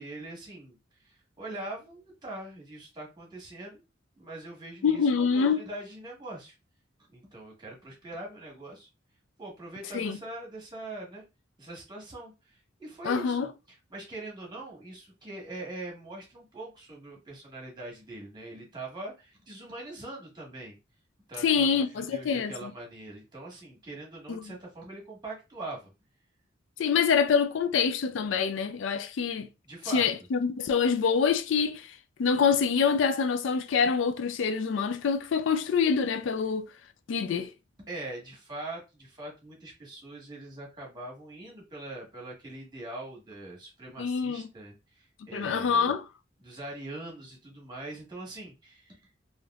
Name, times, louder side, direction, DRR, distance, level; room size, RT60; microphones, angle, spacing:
voice 1, 0.0-3.8 4.2-6.5 7.1-8.9 9.4-11.2 11.6-13.4 13.7-20.8 21.3-25.9 29.6-30.1 37.8-45.9 46.4-49.1, right 2 dB, 25° right, 1.3 m, -42 dB
voice 2, 4.8-5.6 9.9-10.2 13.0-13.5 21.4-22.7 24.3-24.4 26.8-29.5 29.9-36.7 37.1-37.5 44.0-44.5 45.3-46.0, left 6 dB, 70° left, 0.4 m, -26 dB
3.3 x 2.7 x 2.3 m
head